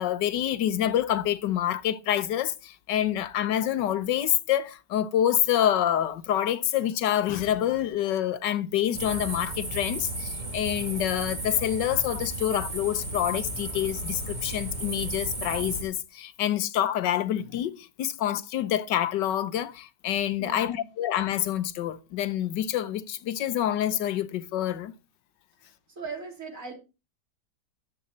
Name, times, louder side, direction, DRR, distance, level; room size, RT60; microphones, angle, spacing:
voice 1, 0.0-24.9, left 11 dB, 85° left, 1.5 m, -27 dB
sound 1, 8.9-15.8, right 1 dB, 25° right, 2.3 m, -34 dB
voice 2, 20.4-20.9 26.0-26.7, right 4 dB, 50° right, 3.6 m, -38 dB
12.5 x 8.5 x 4.0 m
omnidirectional pair, 1.8 m